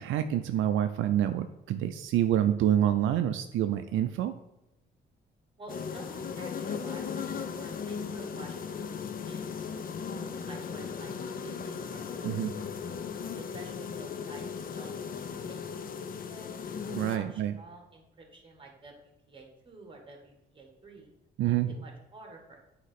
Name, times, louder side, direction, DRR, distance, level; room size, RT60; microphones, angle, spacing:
voice 1, 0.0-4.3 12.2-12.5 16.9-17.5 21.4-21.7, right 11 dB, 80° right, 9 dB, 0.4 m, -27 dB
voice 2, 5.6-10.0 10.5-11.1 11.4-13.1 13.4-14.5 14.7-16.5 17.1-21.1 21.4-22.6, right 2 dB, 25° right, 1 dB, 1.8 m, -50 dB
sound 1, 5.7-17.2, left 6 dB, 45° left, 0.6 m, -37 dB
8.1 x 2.9 x 5.7 m, 0.90 s
cardioid pair, 90°, 20 cm